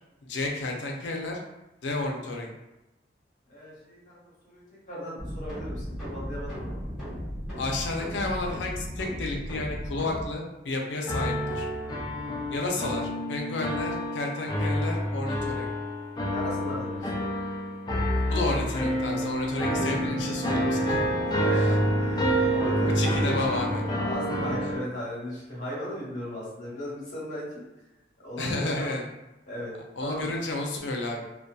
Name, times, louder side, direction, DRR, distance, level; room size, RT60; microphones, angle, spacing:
voice 1, 0.3-1.4 1.8-2.5 7.6-11.7 12.5-15.7 18.1-21.0 21.6-21.7 23.0-23.8 28.4-29.0 30.0-31.2, left 2 dB, 85° left, 1 dB, 0.5 m, -31 dB
voice 2, 3.5-4.6 4.9-6.8 12.1-12.4 16.2-17.3 21.4-23.4 23.9-27.6 28.2-29.0 29.5-29.7 30.0-30.3, equal, 45° left, -6 dB, 1.0 m, -37 dB
sound 1, 5.2-10.2, equal, 5° right, 0.9 m, -36 dB
sound 2, 11.1-24.8, equal, 25° left, 0.3 m, -28 dB
2.6 x 2.2 x 2.2 m, 0.96 s
head